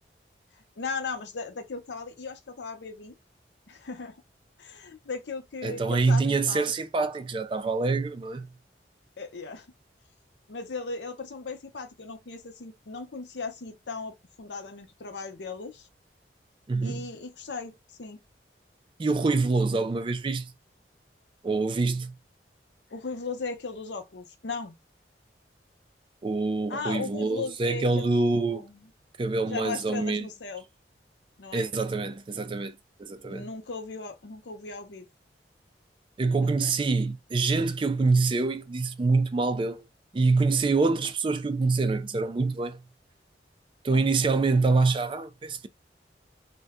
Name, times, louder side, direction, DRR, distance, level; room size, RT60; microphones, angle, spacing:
voice 1, 0.8-3.1 3.7-4.2 4.6-6.7 9.2-9.7 10.5-15.9 16.8-18.2 22.9-24.8 26.7-28.9 29.5-30.6 31.4-31.7 33.3-35.1 36.4-36.7 43.9-44.4, left 4 dB, 80° left, 0.7 m, -37 dB
voice 2, 5.6-8.5 16.7-17.1 19.0-20.5 21.4-22.1 26.2-28.7 29.2-30.3 31.5-33.5 36.2-39.8 40.1-42.8 43.8-45.7, right 3 dB, 30° right, 0.3 m, -25 dB
2.7 x 2.1 x 3.4 m
head